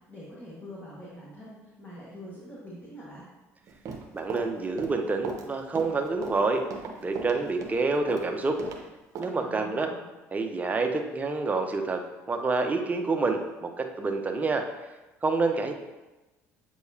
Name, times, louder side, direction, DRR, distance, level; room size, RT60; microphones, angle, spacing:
voice 1, 0.1-3.2 9.4-10.1, equal, 25° left, -7 dB, 1.6 m, -44 dB
Run, 3.7-8.8 9.2-9.3, right 4 dB, 60° right, 0.9 m, -37 dB
voice 2, 4.1-6.6 7.0-8.6 9.2-9.9 10.3-12.0 12.3-14.6 15.2-15.7, right 3 dB, 25° right, 4 dB, 0.8 m, -27 dB
7.9 x 4.6 x 2.8 m, 1.1 s
supercardioid pair, 90°, 6 cm